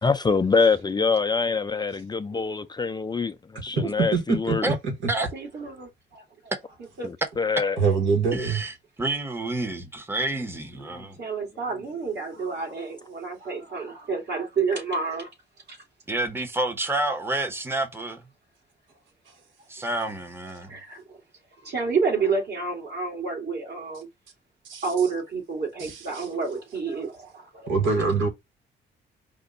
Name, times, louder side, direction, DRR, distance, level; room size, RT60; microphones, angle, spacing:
voice 1, 0.0-4.7 7.0-7.8 10.9-11.1, left 4 dB, 20° left, 0.4 m, -25 dB
voice 2, 3.8-4.7 7.8-8.6 24.6-24.8 25.8-26.3 27.7-28.3, right 5 dB, 75° right, 1.4 m, -24 dB
voice 3, 5.3-6.2 7.0-7.1 11.2-15.3 15.7-15.8 20.7-21.2 21.6-24.1 24.8-27.7, right 5 dB, 55° right, 2.4 m, -29 dB
voice 4, 8.3-11.2 16.1-18.2 19.7-20.7, right 2 dB, 10° right, 0.9 m, -29 dB
5.1 x 2.2 x 3.8 m
cardioid pair, 90°, 20 cm